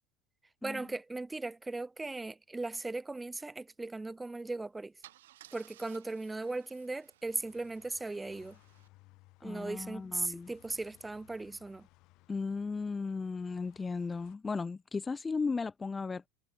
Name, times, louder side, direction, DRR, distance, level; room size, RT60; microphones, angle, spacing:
voice 1, 0.6-4.9 5.5-8.6 9.4-11.9, right 2 dB, 10° right, 2.5 m, -38 dB
Car / Engine starting / Idling, 4.3-4.5 5.0-8.9, right 14 dB, 90° right, 2.7 m, -59 dB
sound 1, 7.3-14.3, left 21 dB, 55° left, 4.8 m, -63 dB
voice 2, 9.4-10.5 12.3-16.3, left 4 dB, 15° left, 1.4 m, -36 dB
supercardioid pair, 115°, 0 cm